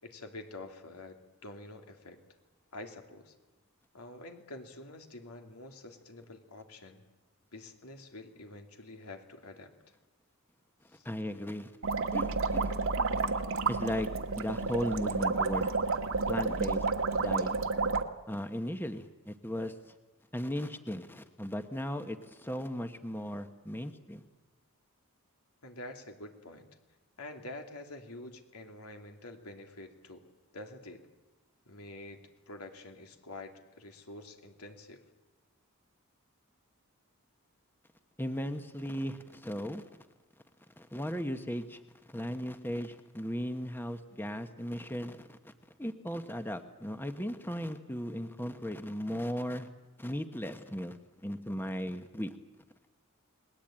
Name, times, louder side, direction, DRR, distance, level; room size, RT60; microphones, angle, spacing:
voice 1, 0.0-2.2 2.7-3.3 3.9-7.0 7.5-9.7 10.9-11.1 25.6-26.7 27.2-30.3 30.5-31.0 31.6-35.0, left 2 dB, 85° left, 4 dB, 2.9 m, -47 dB
voice 2, 11.0-11.7 12.1-12.7 13.7-14.1 14.4-15.7 16.3-16.8 17.2-17.5 18.3-19.7 20.3-24.2 38.2-39.8 40.8-41.8 42.1-45.5 45.8-49.7 50.0-51.0 51.2-52.4, equal, 10° left, 8 dB, 1.1 m, -36 dB
sound 1, 11.8-18.0, right 3 dB, 65° right, 1.5 m, -30 dB
30.0 x 20.5 x 8.9 m, 1.1 s
head